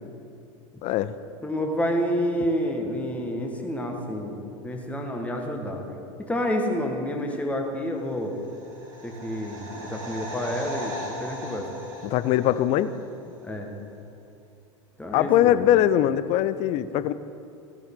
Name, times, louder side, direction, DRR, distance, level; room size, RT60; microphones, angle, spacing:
voice 1, 0.8-1.1 12.0-12.9 15.1-17.1, left 12 dB, 40° left, 14 dB, 0.5 m, -21 dB
voice 2, 1.4-5.9 6.2-8.4 9.0-11.7 13.4-13.7 15.0-15.7, equal, 10° left, 1 dB, 1.5 m, -29 dB
sound 1, 8.2-13.1 13.3-13.4, equal, 80° right, 2.9 m, -38 dB
16.0 x 7.7 x 3.8 m, 2.6 s
figure-of-eight pair, 80°, 17 cm